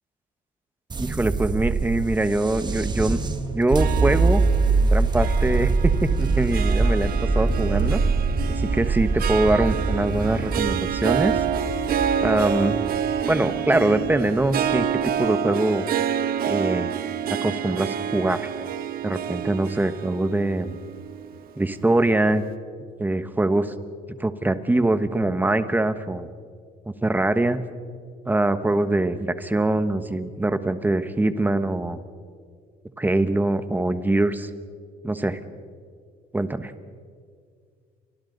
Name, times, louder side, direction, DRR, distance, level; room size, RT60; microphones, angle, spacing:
sound 1, 0.9-15.1, right 3 dB, 25° right, 1.5 m, -24 dB
voice 1, 1.0-3.2 3.5-4.4 4.9-8.0 8.6-11.4 12.2-12.9 13.3-14.9 15.2-15.9 16.5-16.9 17.4-18.5 19.0-20.8 21.6-22.4 23.0-23.7 24.2-26.3 27.0-27.6 28.3-32.0 33.0-34.5 35.0-35.4 36.3-36.7, right 2 dB, 10° right, 11 dB, 1.2 m, -23 dB
Harp, 3.7-22.2, right 8 dB, 60° right, 1.2 m, -28 dB
30.0 x 24.5 x 4.1 m, 2.1 s
cardioid pair, 110°, 17 cm